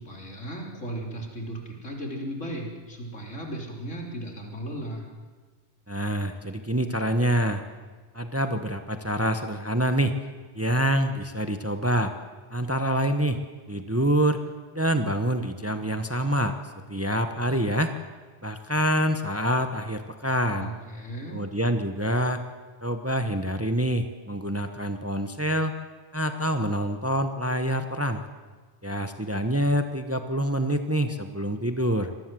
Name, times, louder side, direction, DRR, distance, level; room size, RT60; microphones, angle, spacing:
voice 1, 0.0-5.1 20.6-21.4, right 1 dB, 80° left, 0 dB, 4.1 m, -36 dB
voice 2, 5.9-7.6 8.1-10.1 10.5-12.1 12.5-13.4 13.7-14.4 14.7-16.5 16.9-17.9 18.4-20.7 21.3-22.4 22.8-25.7 26.1-28.2 28.8-32.1, equal, 15° right, 7 dB, 1.0 m, -26 dB
25.0 x 19.0 x 7.7 m, 1.4 s
omnidirectional pair, 1.3 m